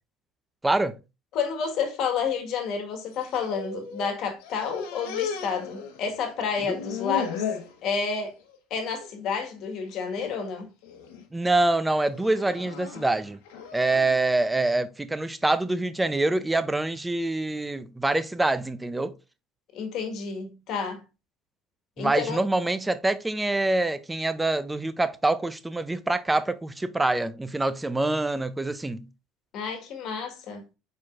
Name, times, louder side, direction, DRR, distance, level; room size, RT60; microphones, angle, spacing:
voice 1, 0.6-1.0 6.7-6.8 11.3-13.4 13.7-19.1 22.0-29.1, right 2 dB, 10° right, 0.5 m, -25 dB
voice 2, 1.3-7.5 7.8-8.3 8.7-10.7 19.7-21.0 22.0-22.4 29.5-30.6, left 6 dB, 60° left, 1.5 m, -30 dB
sound 1, 3.0-4.1 4.4-6.3 6.6-7.7 8.2-8.6 8.9-9.1 9.9-10.3 10.8-11.2 12.0-14.2, left 7 dB, 85° left, 1.2 m, -35 dB
4.6 x 4.4 x 2.4 m
supercardioid pair, 100°, 0 cm